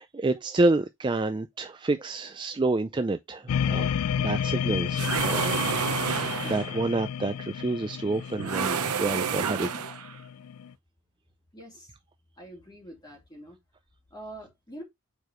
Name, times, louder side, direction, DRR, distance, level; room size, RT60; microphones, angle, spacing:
voice 1, 0.0-3.9 4.2-5.6 6.2-9.7, right 2 dB, 20° right, 0.3 m, -28 dB
sound 1, 3.5-10.7, left 8 dB, 80° left, 0.3 m, -31 dB
sound 2, 5.0-6.8 8.4-10.2, right 6 dB, 85° right, 0.7 m, -29 dB
voice 2, 11.5-11.9 12.4-13.6 14.1-14.8, right 1 dB, 20° left, 2.5 m, -44 dB
6.8 x 4.7 x 3.1 m
head